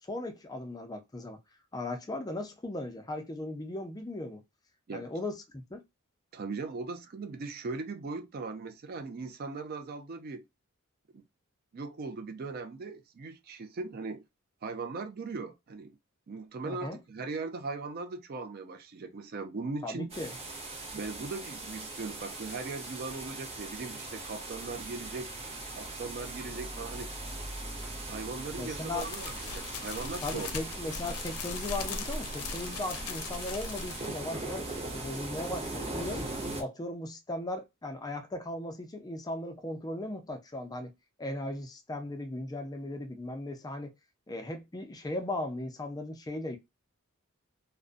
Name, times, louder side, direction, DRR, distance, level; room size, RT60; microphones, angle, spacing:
voice 1, 0.1-1.4 1.7-4.4 4.9-5.8 16.6-17.0 19.8-20.4 28.6-29.1 30.2-34.7 34.9-36.2 36.6-40.9 41.2-43.9 44.3-46.6, left 1 dB, 15° left, 0.5 m, -37 dB
voice 2, 6.3-10.4 11.1-11.2 11.7-14.2 14.6-16.0 16.3-20.1 20.9-25.3 25.8-27.1 28.1-30.6, right 4 dB, 45° right, 0.4 m, -39 dB
sound 1, 20.1-36.6, right 2 dB, 30° right, 0.8 m, -40 dB
sound 2, 29.0-34.2, left 4 dB, 90° left, 0.5 m, -39 dB
2.5 x 2.1 x 2.4 m
head